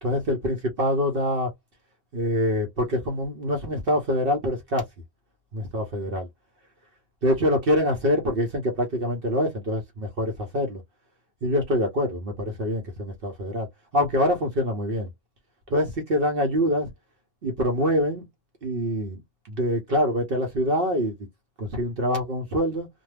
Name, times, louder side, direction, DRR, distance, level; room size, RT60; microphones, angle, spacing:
voice 1, 0.0-1.5 2.1-4.8 5.5-6.3 7.2-10.8 11.4-13.7 13.9-15.1 15.7-16.9 17.4-18.2 18.6-19.2 19.5-21.1 21.6-22.9, equal, 50° right, 0.9 m, -25 dB
2.6 x 2.2 x 3.2 m
omnidirectional pair, 1.4 m